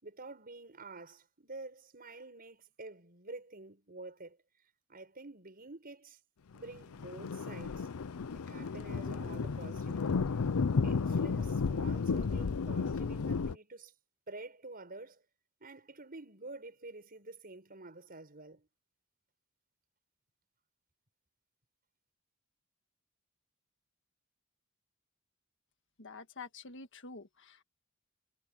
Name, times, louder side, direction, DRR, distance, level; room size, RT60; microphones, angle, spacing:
voice 1, 0.0-4.4 4.9-6.2 6.5-7.9 8.3-10.3 10.8-13.9 14.3-15.2 15.6-18.7, right 2 dB, 45° right, 5.8 m, -49 dB
Thunder, 6.7-13.6, left 5 dB, 85° left, 0.6 m, -33 dB
voice 2, 26.0-27.6, left 4 dB, 60° left, 1.7 m, -48 dB
head